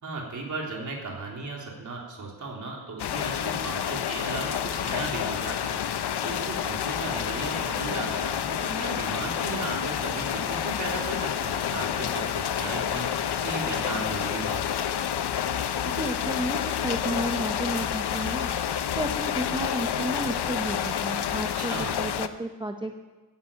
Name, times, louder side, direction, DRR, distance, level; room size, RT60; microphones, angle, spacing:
voice 1, 0.0-14.6 21.5-21.9, right 3 dB, 50° right, -1 dB, 3.6 m, -36 dB
sound 1, 3.0-22.3, left 9 dB, 85° left, 0.8 m, -29 dB
voice 2, 15.9-18.5 18.9-22.9, right 1 dB, 10° right, 3 dB, 0.9 m, -32 dB
15.5 x 10.0 x 8.6 m, 1.2 s
wide cardioid pair, 180°, 39 cm